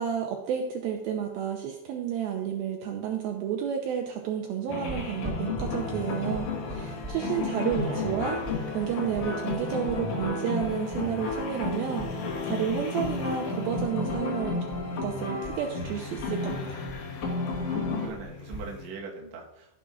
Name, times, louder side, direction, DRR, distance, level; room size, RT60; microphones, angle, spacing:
voice 1, 0.0-8.4 8.7-14.6 15.0-16.8, right 8 dB, 80° right, 2 dB, 2.3 m, -31 dB
sound 1, 4.7-18.1, left 3 dB, 55° left, 2.7 m, -32 dB
sound 2, 4.9-13.2 13.4-15.1 15.4-18.7, right 1 dB, 10° right, 2.9 m, -41 dB
sound 3, 5.7-18.9, left 6 dB, 75° left, 3.5 m, -46 dB
voice 2, 7.7-8.1 17.6-19.8, right 4 dB, 60° right, -1 dB, 2.0 m, -42 dB
15.5 x 7.0 x 2.5 m, 0.88 s
omnidirectional pair, 4.8 m